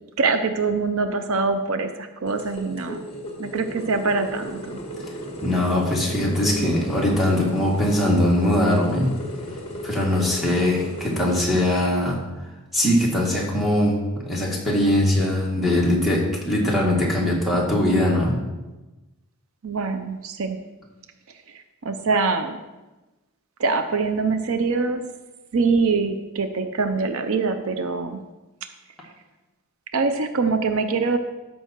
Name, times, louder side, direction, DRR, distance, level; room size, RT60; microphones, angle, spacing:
voice 1, 0.2-3.1 3.4-4.8 19.6-20.6 21.5-22.6 23.6-25.0 25.5-28.2 29.9-31.2, right 4 dB, 70° right, 8 dB, 0.6 m, -24 dB
sound 1, 2.3-11.4, left 1 dB, 25° left, 1.6 m, -35 dB
voice 2, 5.4-9.1 9.8-12.2 12.7-14.0 14.3-18.4, left 1 dB, ahead, -4 dB, 2.0 m, -21 dB
13.0 x 5.5 x 4.5 m, 1.1 s
head